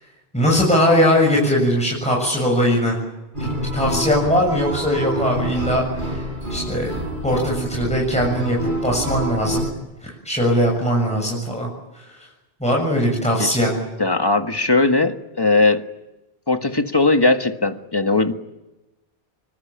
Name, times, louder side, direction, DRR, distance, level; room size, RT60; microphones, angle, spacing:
voice 1, 0.3-3.0 3.7-6.2 6.5-6.9 7.2-9.7 10.0-12.0 12.6-13.8, equal, 5° left, -2 dB, 7.0 m, -20 dB
sound 1, 3.3-9.7, equal, 50° right, 6.0 m, -27 dB
voice 2, 14.0-15.8 16.5-18.3, left 3 dB, 25° left, 6 dB, 1.7 m, -18 dB
26.0 x 24.5 x 8.9 m, 1.0 s
omnidirectional pair, 1.1 m